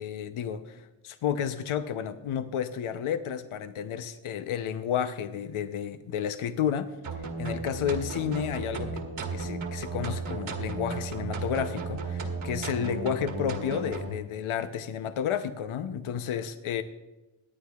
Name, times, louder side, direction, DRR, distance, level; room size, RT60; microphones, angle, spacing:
voice 1, 0.0-6.9 7.4-9.0 9.3-16.8, left 8 dB, 75° left, 10 dB, 0.8 m, -31 dB
sound 1, 7.0-14.1, right 3 dB, 70° right, 1.7 m, -34 dB
24.0 x 9.7 x 2.4 m, 1.0 s
wide cardioid pair, 100°, 50 cm